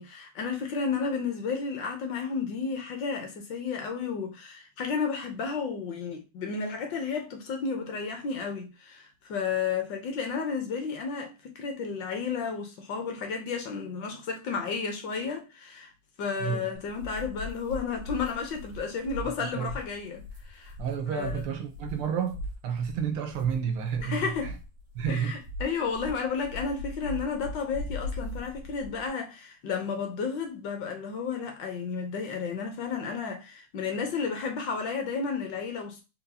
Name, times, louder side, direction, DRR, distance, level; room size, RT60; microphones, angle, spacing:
voice 1, 0.0-15.9 16.2-20.2 20.5-20.7 21.1-21.4 24.0-24.5 25.1-36.0, left 5 dB, 65° left, 1.5 m, -32 dB
sound 1, 16.7-29.1, left 1 dB, 45° right, 1.5 m, -40 dB
voice 2, 20.8-24.5 25.0-25.4, right 7 dB, 80° right, 1.8 m, -30 dB
4.4 x 3.8 x 2.7 m
omnidirectional pair, 2.4 m